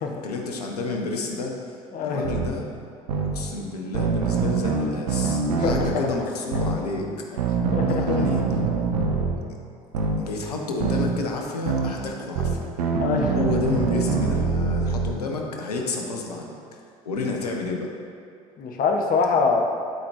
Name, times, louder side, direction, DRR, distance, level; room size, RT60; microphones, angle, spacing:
voice 1, 0.2-2.7 3.2-7.3 7.9-8.5 9.3-9.4 10.2-12.7 13.3-16.8 17.0-17.9, left 3 dB, 85° left, 1 dB, 0.9 m, -30 dB
voice 2, 1.9-2.2 5.6-6.1 7.7-8.3 13.0-13.5 18.6-19.6, left 5 dB, 50° left, 2 dB, 1.0 m, -24 dB
sound 1, 2.2-2.5 3.1-3.3 3.9-5.9 6.5-6.8 7.4-9.3 9.9-10.2 10.8-11.1 11.7-11.9 12.3-15.1, right 5 dB, 80° right, 0.7 m, -24 dB
12.0 x 4.3 x 2.9 m, 2.4 s
hypercardioid pair, 60°, 19 cm